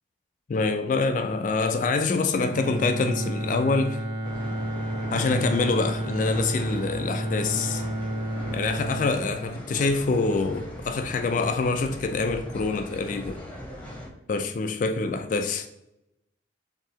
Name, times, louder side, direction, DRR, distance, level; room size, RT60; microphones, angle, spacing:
voice 1, 0.5-4.0 5.1-7.8 8.5-13.4 14.3-15.7, left 3 dB, 40° left, 0.3 m, -26 dB
Bowed string instrument, 2.4-10.6, right 1 dB, 80° right, 0.8 m, -32 dB
sound 1, 4.2-14.1, equal, 10° left, 0.9 m, -39 dB
4.7 x 3.6 x 2.9 m
head